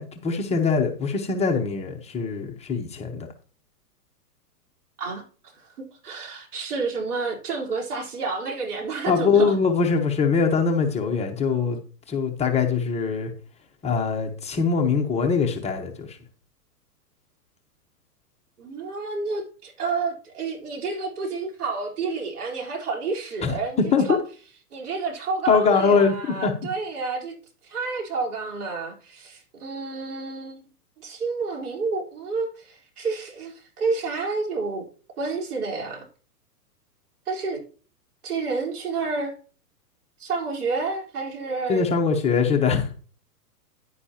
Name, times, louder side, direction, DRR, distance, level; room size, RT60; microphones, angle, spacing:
voice 1, 0.0-3.3 9.1-11.8 12.1-13.3 13.8-16.2 23.4-23.5 23.9-24.0 25.5-26.1 26.4-26.5 41.7-42.9, left 5 dB, 15° left, 1.0 m, -22 dB
voice 2, 6.0-9.6 18.6-24.2 24.7-27.3 27.6-30.7 31.0-34.9 35.2-36.1 37.3-37.6 38.2-39.3 40.2-41.9, right 4 dB, 70° right, 4.2 m, -29 dB
10.5 x 9.7 x 2.9 m
hypercardioid pair, 130°, 47 cm